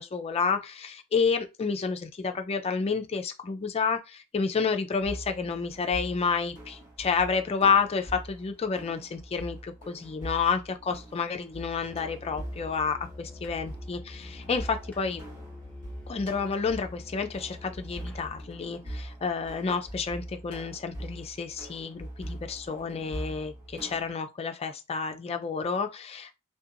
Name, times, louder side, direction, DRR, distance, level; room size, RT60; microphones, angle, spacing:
voice 1, 0.0-15.2 16.1-26.3, left 5 dB, 25° left, 0.4 m, -30 dB
sound 1, 5.0-24.1, right 1 dB, 40° right, 1.2 m, -43 dB
Musical instrument, 11.8-18.5, left 2 dB, 5° left, 0.7 m, -46 dB
2.8 x 2.1 x 2.5 m
head